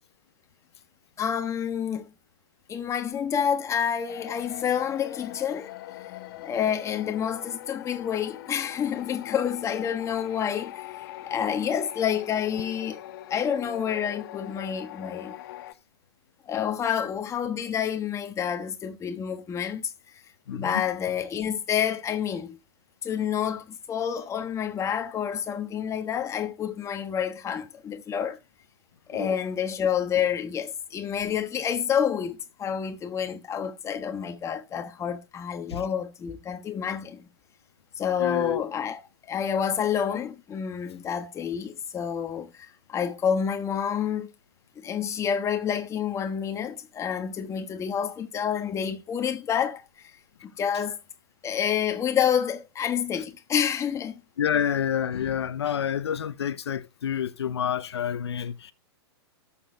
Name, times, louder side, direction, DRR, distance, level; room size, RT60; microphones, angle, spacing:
voice 1, 1.2-2.1 2.7-5.7 6.4-13.0 13.3-15.3 16.5-19.9 20.5-22.6 23.0-28.4 29.1-37.3 38.0-44.3 44.8-50.1 50.4-51.0 51.4-54.2, left 8 dB, 20° left, 1.3 m, -28 dB
sound 1, 4.1-15.7, left 14 dB, 55° left, 1.1 m, -41 dB
voice 2, 20.5-20.8 29.1-29.4 35.7-35.8 38.2-38.6 54.4-58.7, left 9 dB, 75° left, 0.7 m, -28 dB
17.5 x 7.1 x 2.2 m
hypercardioid pair, 115°, 14 cm